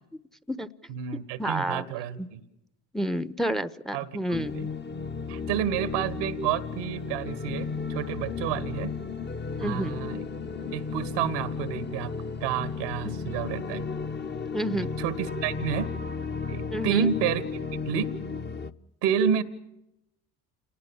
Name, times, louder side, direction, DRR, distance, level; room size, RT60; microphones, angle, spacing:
voice 1, 0.9-2.4 3.9-4.1 4.5-4.6 5.3-8.9 9.6-10.2 10.7-12.1 12.4-13.8 15.0-15.9 16.5-18.1 19.0-19.4, right 9 dB, 85° right, 15 dB, 1.7 m, -29 dB
voice 2, 1.4-1.9 2.2-2.3 2.9-4.5 9.6-10.0 13.0-13.1 14.5-14.9 16.7-17.1, equal, ahead, 16 dB, 0.9 m, -29 dB
sound 1, 4.3-18.7, left 5 dB, 25° left, 1.0 m, -34 dB
28.5 x 19.0 x 7.1 m, 0.85 s
hypercardioid pair, 60°, 47 cm